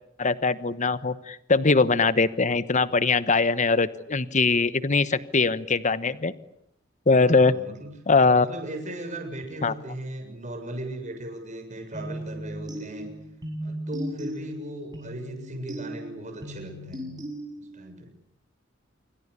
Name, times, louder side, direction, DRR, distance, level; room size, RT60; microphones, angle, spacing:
voice 1, 0.2-6.3 7.1-7.5 8.1-8.5 9.6-9.7, left 4 dB, 40° left, 14 dB, 1.1 m, -21 dB
voice 2, 7.1-7.9 8.4-13.1 13.6-17.1 17.6-18.1, right 1 dB, 40° right, 4 dB, 7.4 m, -37 dB
sound 1, 11.9-17.9, equal, 20° right, 7.7 m, -37 dB
27.0 x 24.5 x 8.4 m, 0.73 s
head